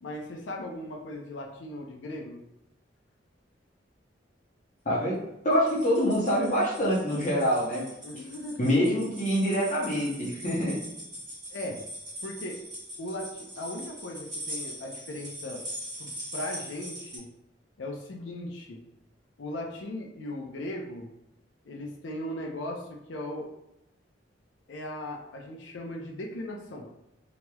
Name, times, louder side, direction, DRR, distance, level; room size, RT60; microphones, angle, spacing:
voice 1, 0.0-2.4 8.0-8.7 11.5-11.8 12.2-12.6 13.0-15.7 16.0-17.3 17.8-18.8 19.4-21.1 21.7-23.5 24.7-26.9, left 1 dB, 85° left, 0 dB, 0.5 m, -38 dB
voice 2, 4.8-7.8 8.6-10.8, equal, 40° left, -6 dB, 0.8 m, -25 dB
sound 1, 5.5-17.2, equal, 25° right, 1.2 m, -41 dB
3.0 x 2.9 x 2.2 m, 0.84 s
head